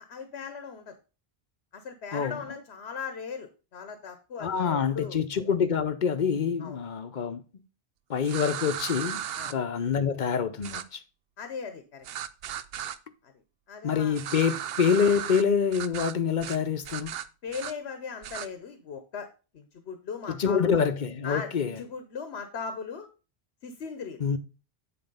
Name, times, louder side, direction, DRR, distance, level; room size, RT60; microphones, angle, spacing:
voice 1, 0.1-0.9 1.7-5.2 6.6-6.8 9.3-9.6 11.4-12.1 13.2-13.3 13.7-14.2 17.4-19.3 19.5-20.8 21.2-23.1 23.6-24.2, left 6 dB, 90° left, 1.2 m, -38 dB
voice 2, 4.4-7.4 8.1-9.2 9.5-11.0 13.8-17.1 20.3-21.8 24.2-24.4, left 6 dB, 50° left, 0.8 m, -26 dB
sound 1, 8.2-9.5 10.6-10.8 12.0-13.0 14.1-15.4 15.7-16.1 16.4-16.6 16.8-17.7 18.2-18.5, right 10 dB, 70° right, 0.8 m, -35 dB
9.0 x 4.2 x 5.4 m
omnidirectional pair, 1.1 m